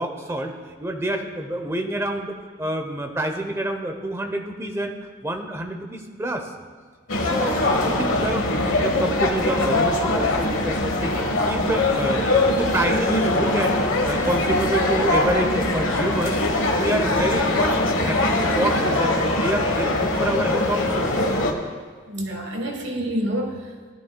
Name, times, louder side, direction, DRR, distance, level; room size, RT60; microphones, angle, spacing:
voice 1, 0.0-5.0 5.2-6.5 7.2-11.2 11.4-16.4 16.7-21.1, right 1 dB, 15° right, 4 dB, 0.8 m, -28 dB
sound 1, 7.1-21.5, left 2 dB, 90° left, 1.2 m, -22 dB
voice 2, 22.1-23.9, equal, 65° right, 2 dB, 1.4 m, -28 dB
17.0 x 11.5 x 2.3 m, 1.5 s
head